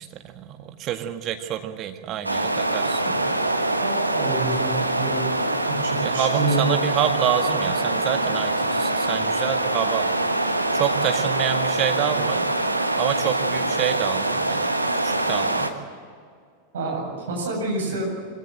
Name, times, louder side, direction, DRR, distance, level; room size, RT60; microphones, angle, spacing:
voice 1, 0.0-3.0 6.0-10.1 10.7-12.5 13.0-14.7 15.0-15.7, right 11 dB, 35° right, 6 dB, 1.8 m, -27 dB
sound 1, 2.2-15.7, right 2 dB, 85° right, 1.4 m, -24 dB
voice 2, 2.7-3.1 3.8-6.7 16.7-18.1, right 2 dB, 65° right, 0 dB, 7.6 m, -28 dB
24.5 x 17.0 x 7.9 m, 2.2 s
figure-of-eight pair, 90°, 0 cm